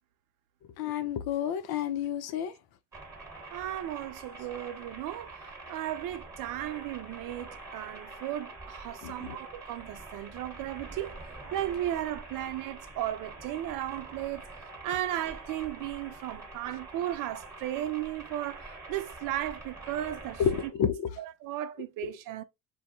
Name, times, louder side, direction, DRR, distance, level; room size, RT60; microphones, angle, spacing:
voice 1, 0.8-2.5 9.0-9.4 20.4-21.2 22.0-22.1, left 8 dB, 60° left, 0.6 m, -30 dB
sound 1, 2.9-20.7, right 3 dB, 5° right, 1.2 m, -45 dB
voice 2, 3.5-5.3 5.7-11.2 11.5-14.5 14.8-18.6 18.9-20.4 21.2-22.4, right 13 dB, 50° right, 0.4 m, -35 dB
2.2 x 2.2 x 2.7 m
hypercardioid pair, 55°, 43 cm